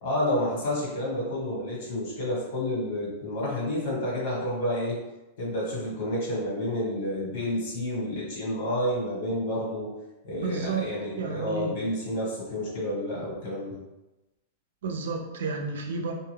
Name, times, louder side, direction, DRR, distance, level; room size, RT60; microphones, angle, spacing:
voice 1, 0.0-5.0 5.4-9.9 10.3-13.8, left 1 dB, 65° left, -5 dB, 1.4 m, -30 dB
voice 2, 10.4-10.9 11.2-11.7 14.8-16.1, right 4 dB, 85° right, 3 dB, 0.5 m, -31 dB
2.5 x 2.3 x 3.2 m, 1.0 s
supercardioid pair, 155°, 0 cm